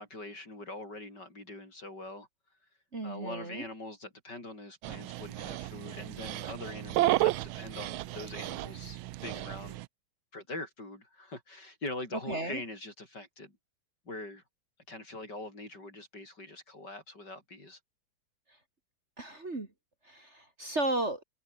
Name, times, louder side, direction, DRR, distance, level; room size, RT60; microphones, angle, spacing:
voice 1, 0.0-2.3 3.0-9.8 10.3-13.6 14.1-14.4 14.9-17.8, left 2 dB, 55° left, 8.0 m, -43 dB
voice 2, 2.9-3.6 12.3-12.6 19.2-19.7 20.1-21.2, right 2 dB, 35° right, 3.0 m, -34 dB
Dog, 4.8-9.9, right 16 dB, 85° right, 1.5 m, -33 dB
omnidirectional pair, 2.2 m